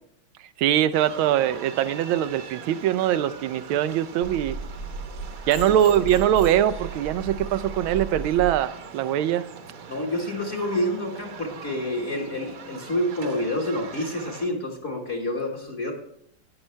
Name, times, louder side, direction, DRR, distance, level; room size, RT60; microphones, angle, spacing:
voice 1, 0.6-4.6 5.5-9.4, right 11 dB, 80° right, 14 dB, 1.4 m, -22 dB
sound 1, 0.9-14.5, right 5 dB, 60° right, 1.5 m, -42 dB
sound 2, 4.2-8.5, right 3 dB, 80° left, 4.4 m, -35 dB
voice 2, 9.9-15.9, left 1 dB, 40° left, -1 dB, 1.7 m, -28 dB
13.5 x 9.8 x 3.2 m, 0.69 s
omnidirectional pair, 2.3 m